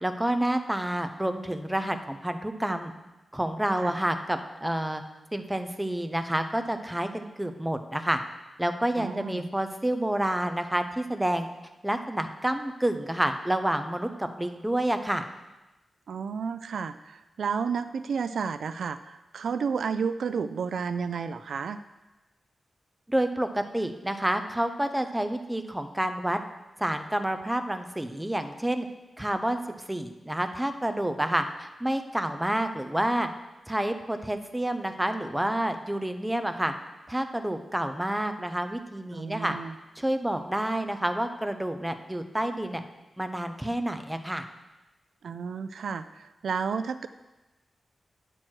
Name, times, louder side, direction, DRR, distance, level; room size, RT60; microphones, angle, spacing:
voice 1, 0.0-2.9 3.3-5.0 5.3-8.2 8.6-11.5 11.8-15.2 23.1-26.4 26.8-28.9 29.2-29.6 29.9-33.3 33.7-36.7 37.1-39.6 40.0-42.8 43.2-44.5, right 1 dB, 10° right, 7 dB, 0.5 m, -29 dB
voice 2, 9.0-9.5 16.1-21.8 39.1-39.7 45.2-47.1, right 6 dB, 75° right, 12 dB, 0.3 m, -31 dB
9.0 x 6.1 x 4.5 m, 1.1 s
wide cardioid pair, 150°, 0 cm